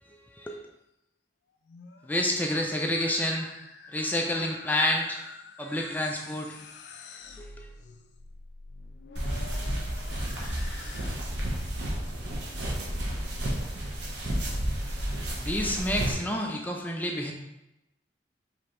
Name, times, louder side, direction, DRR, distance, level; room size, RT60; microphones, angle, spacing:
voice 1, 0.0-0.6 2.0-3.6 3.9-5.2 5.6-6.5 7.4-7.7 15.4-17.3, left 1 dB, 10° left, 2 dB, 0.4 m, -29 dB
sound 1, 1.5-11.5, left 4 dB, 75° left, 0.4 m, -47 dB
sound 2, 9.2-16.1, right 1 dB, 85° right, 0.9 m, -31 dB
5.0 x 3.2 x 3.0 m, 0.91 s
head